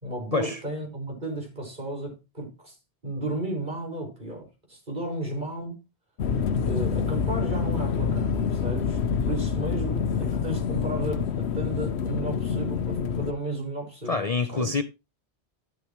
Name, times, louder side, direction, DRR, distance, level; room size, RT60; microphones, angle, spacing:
voice 1, 0.0-2.8 3.0-5.8 6.5-14.2 14.5-14.7, right 1 dB, 45° right, 5.8 m, -34 dB
sound 1, 6.2-13.3, left 6 dB, 80° left, 1.0 m, -27 dB
voice 2, 14.0-14.8, left 4 dB, 40° left, 0.7 m, -26 dB
13.0 x 8.5 x 3.1 m
omnidirectional pair, 1.1 m